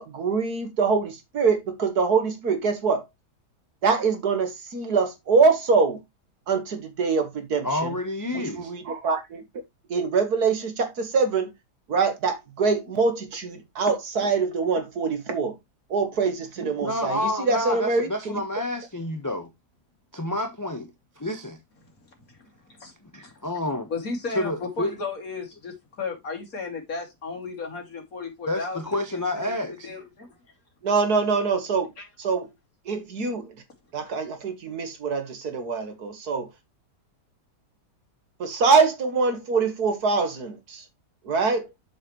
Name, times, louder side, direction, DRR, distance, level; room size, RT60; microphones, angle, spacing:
voice 1, 0.0-3.0 3.8-6.0 6.5-7.9 8.3-9.4 9.9-11.5 11.9-15.5 15.9-18.4 30.8-31.9 32.2-32.5 32.9-33.5 33.9-36.5 38.4-40.8 41.3-41.7, right 4 dB, 65° right, 2.0 m, -24 dB
voice 2, 7.6-8.7 16.8-19.5 20.1-20.9 21.2-21.6 23.1-23.9 24.3-24.9 28.5-29.9, left 1 dB, 10° left, 1.1 m, -29 dB
voice 3, 22.3-22.9 23.2-23.3 23.9-29.5 29.8-30.3 32.0-32.1, left 4 dB, 55° left, 3.1 m, -34 dB
7.6 x 7.4 x 3.1 m
omnidirectional pair, 1.8 m